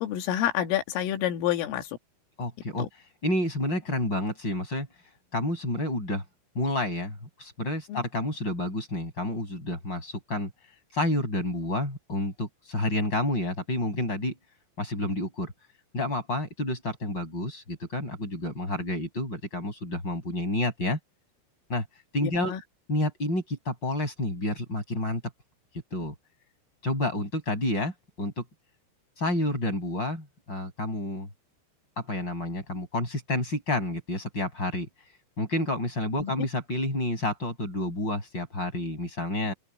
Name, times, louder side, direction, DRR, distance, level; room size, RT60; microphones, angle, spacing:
voice 1, 0.0-1.9 2.8-2.9 7.9-8.0 22.2-22.6 36.2-36.3, left 11 dB, 80° left, 4.5 m, -28 dB
voice 2, 2.4-2.9 3.2-4.9 5.3-6.2 6.5-10.5 10.9-14.3 14.8-15.5 15.9-21.0 21.7-21.9 22.1-22.6 22.9-25.2 25.9-26.1 26.8-28.4 29.2-31.3 32.0-34.9 35.4-39.5, left 1 dB, 20° left, 6.5 m, -29 dB
open air
omnidirectional pair, 5.8 m